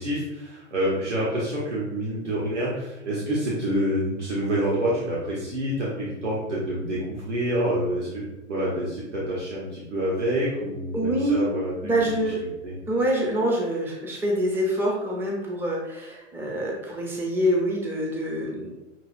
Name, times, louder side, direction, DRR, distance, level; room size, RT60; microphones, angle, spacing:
voice 1, 0.0-8.2 8.5-12.0 12.6-12.7, right 1 dB, 75° right, -6 dB, 1.3 m, -27 dB
voice 2, 10.9-11.4 11.8-12.4 12.9-18.7, right 1 dB, 5° right, -2 dB, 0.6 m, -25 dB
6.0 x 2.9 x 2.4 m, 0.96 s
figure-of-eight pair, 105°, 37 cm